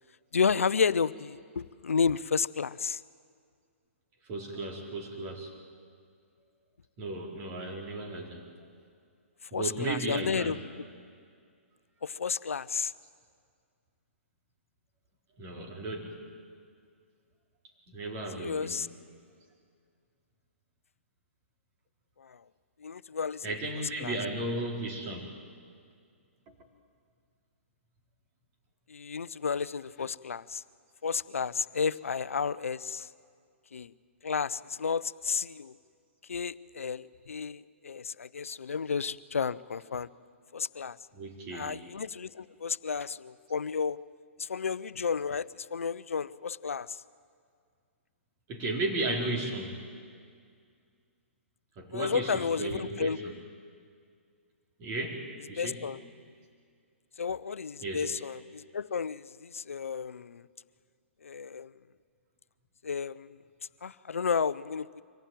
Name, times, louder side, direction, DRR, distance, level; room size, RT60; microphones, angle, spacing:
voice 1, 0.3-3.0 9.5-10.6 12.0-12.9 18.4-18.9 22.2-22.4 22.8-23.5 24.0-24.1 28.9-30.6 31.0-33.1 33.7-33.9 34.2-35.7 36.3-40.1 40.5-41.0 41.5-44.0 44.4-47.0 51.9-53.2 55.6-56.0 57.2-60.5 61.2-61.7 62.8-63.4 63.8-65.0, left 6 dB, 85° left, 17 dB, 0.6 m, -32 dB
voice 2, 4.3-5.5 7.0-8.4 9.5-10.6 15.4-16.2 17.9-18.8 23.4-25.3 41.1-41.8 48.5-49.8 51.8-53.3 54.8-55.2 55.5-55.8 57.8-58.1, right 2 dB, 30° right, 0 dB, 4.4 m, -35 dB
24.5 x 16.5 x 9.2 m, 2.1 s
hypercardioid pair, 135°, 7 cm